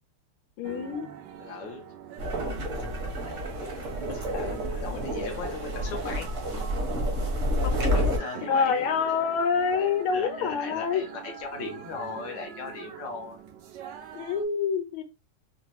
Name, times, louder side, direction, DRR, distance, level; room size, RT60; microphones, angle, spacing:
voice 1, 0.6-1.1 7.6-8.2 8.4-11.0 14.1-15.0, left 6 dB, 85° left, 1.5 m, -27 dB
sound 1, 0.6-14.4, right 9 dB, 80° right, 1.0 m, -43 dB
voice 2, 1.4-1.9 3.6-6.3 8.1-9.3 9.7-13.4, left 4 dB, 65° left, 1.3 m, -38 dB
sound 2, 2.2-8.2, equal, 55° right, 0.8 m, -29 dB
3.8 x 2.0 x 2.8 m
omnidirectional pair, 2.4 m